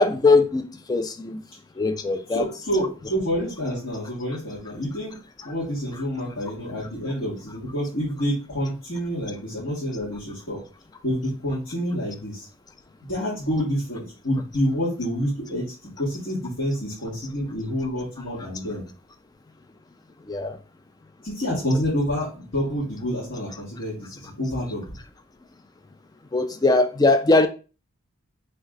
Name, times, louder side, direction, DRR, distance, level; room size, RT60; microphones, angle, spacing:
voice 1, 0.0-1.4 1.8-2.4 20.3-20.6 26.3-27.5, left 3 dB, 20° left, 0.3 m, -20 dB
voice 2, 2.3-5.2 5.4-10.6 11.0-12.5 13.1-18.8 21.2-24.9, equal, 60° left, 1.7 m, -28 dB
3.2 x 3.2 x 3.7 m
head